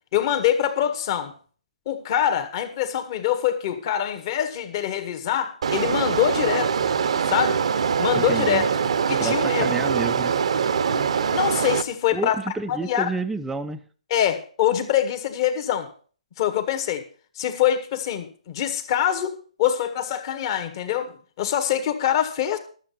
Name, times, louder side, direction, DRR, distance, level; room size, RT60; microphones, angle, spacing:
voice 1, 0.1-1.3 1.8-6.7 7.2-7.6 8.0-8.7 9.1-9.7 10.9-12.3 12.7-13.1 14.1-15.9 16.4-17.0 17.3-19.3 19.6-22.6, left 10 dB, 40° left, 1.6 m, -24 dB
sound 1, 5.6-11.8, right 6 dB, 60° right, 0.8 m, -23 dB
voice 2, 8.1-8.6 9.2-10.3 12.1-13.8, right 3 dB, 5° right, 0.5 m, -30 dB
12.5 x 7.5 x 5.7 m
figure-of-eight pair, 140°, 4 cm